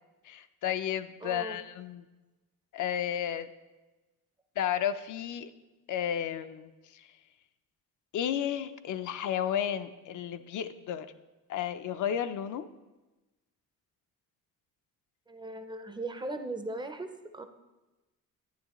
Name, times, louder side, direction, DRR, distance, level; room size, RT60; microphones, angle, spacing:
voice 1, 0.2-2.0 2.7-3.5 4.6-5.5 5.9-7.1 8.1-11.1 11.5-12.7, left 9 dB, 65° left, 10 dB, 0.5 m, -32 dB
voice 2, 1.2-1.6 15.3-17.4, right 2 dB, 15° right, 7 dB, 0.5 m, -38 dB
11.0 x 10.0 x 3.0 m, 1.1 s
cardioid pair, 145°, 32 cm